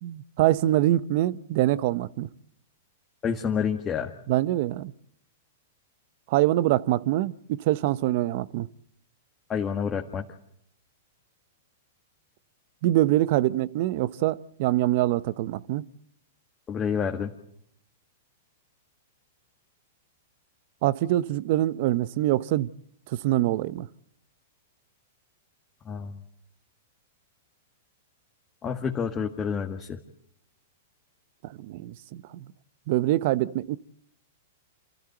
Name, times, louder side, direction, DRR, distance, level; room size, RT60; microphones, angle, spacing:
voice 1, 0.0-2.3 4.3-4.9 6.3-8.7 12.8-15.8 20.8-22.7 23.1-23.9 31.4-32.4 32.9-33.8, right 15 dB, 55° right, 0.8 m, -24 dB
voice 2, 3.2-4.1 9.5-10.2 16.7-17.3 25.9-26.2 28.6-30.0, left 7 dB, 20° left, 1.8 m, -28 dB
27.5 x 14.0 x 8.0 m
hypercardioid pair, 120°, 0 cm